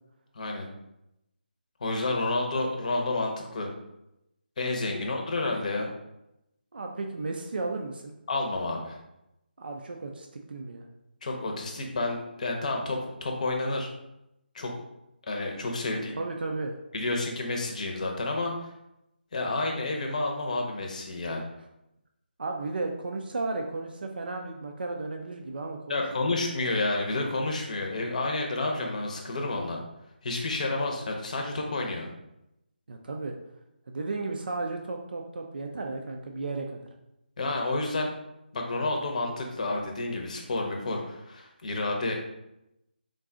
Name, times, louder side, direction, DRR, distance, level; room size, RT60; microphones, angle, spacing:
voice 1, 0.3-0.7 1.8-3.7 4.6-5.9 8.3-9.0 11.2-13.9 14.5-14.7 15.3-16.2 16.9-18.7 19.3-21.4 25.9-29.8 30.2-32.1 37.4-38.1 38.5-42.1, left 2 dB, 45° left, 2 dB, 0.7 m, -30 dB
voice 2, 6.7-8.1 9.6-10.8 16.1-16.8 21.3-21.4 22.4-26.4 32.9-33.3 33.9-36.8, right 3 dB, 65° right, 2 dB, 0.5 m, -34 dB
3.8 x 2.3 x 3.7 m, 0.87 s
figure-of-eight pair, 160°, 6 cm